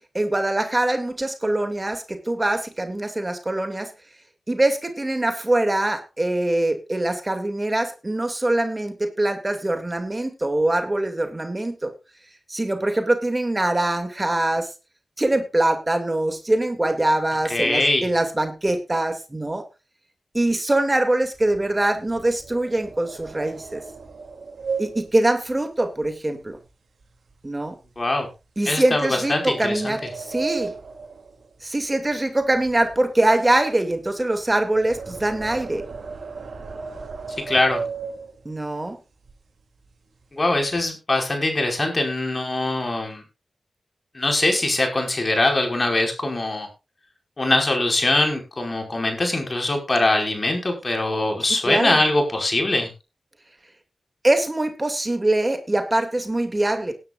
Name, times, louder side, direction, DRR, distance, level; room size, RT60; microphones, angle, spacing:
voice 1, 0.1-3.9 4.5-11.9 12.5-14.7 15.2-19.6 20.3-23.8 24.8-26.6 27.4-27.8 28.6-30.7 31.6-35.8 38.4-39.0 51.4-52.0 54.2-56.9, right 1 dB, 25° right, 6 dB, 2.4 m, -23 dB
voice 2, 17.5-18.1 28.0-28.3 28.6-29.9 37.5-37.8 40.3-43.2 44.1-46.7 47.4-52.9, left 2 dB, 40° left, 3 dB, 5.1 m, -22 dB
sound 1, 21.3-26.7 27.0-27.3 27.8-28.0 28.8-32.1 32.4-38.6 39.2-39.3 39.6-39.9 40.2-40.9, right 5 dB, 75° right, 2.8 m, -36 dB
18.5 x 10.5 x 2.5 m, 0.28 s
cardioid pair, 45°, 0 cm